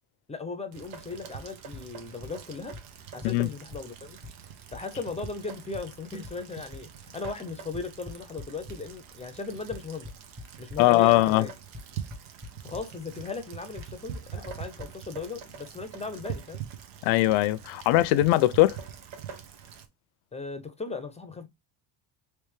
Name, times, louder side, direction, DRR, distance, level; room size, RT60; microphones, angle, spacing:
voice 1, 0.3-2.8 3.1-4.2 4.7-10.1 10.6-11.5 12.6-16.6 20.3-21.5, left 4 dB, 15° left, 0.5 m, -37 dB
Rain, 0.7-19.9, right 8 dB, 90° right, 1.0 m, -44 dB
sound 1, 1.7-1.8 2.2-2.3 2.7-2.8 3.2-3.3 3.7-3.8 4.2-4.3 4.7-4.8 5.2-5.3 5.7-5.8 6.2-6.3 6.7-6.8 7.2-7.3 7.7-8.7 9.7-10.8 11.7-11.8 12.1-12.5 12.7-12.8 13.8-13.9 14.1-14.2 14.5-14.6 14.8-14.9, left 2 dB, 25° right, 1.1 m, -40 dB
voice 2, 10.8-11.5 17.0-18.8, left 16 dB, 75° left, 0.6 m, -21 dB
3.3 x 3.0 x 3.1 m
cardioid pair, 115°, 48 cm